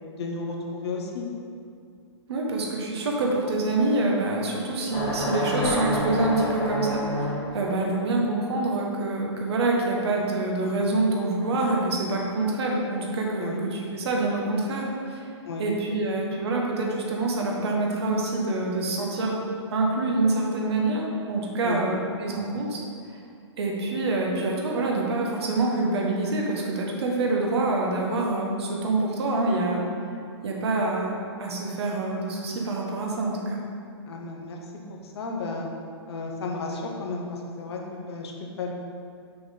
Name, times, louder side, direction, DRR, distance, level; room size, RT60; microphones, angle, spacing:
voice 1, 0.2-1.2 13.4-13.6 15.5-15.6 21.6-21.8 34.1-34.6 35.0-35.7 36.1-38.7, left 3 dB, 65° left, 1 dB, 1.1 m, -33 dB
voice 2, 2.3-15.3 15.6-19.4 19.7-22.8 23.6-29.8 30.4-31.1 31.4-33.6, right 2 dB, 65° right, -1 dB, 1.3 m, -26 dB
sound 1, 4.9-7.8, left 1 dB, 15° left, 1.1 m, -28 dB
5.9 x 4.0 x 5.2 m, 2.3 s
hypercardioid pair, 125°, 15 cm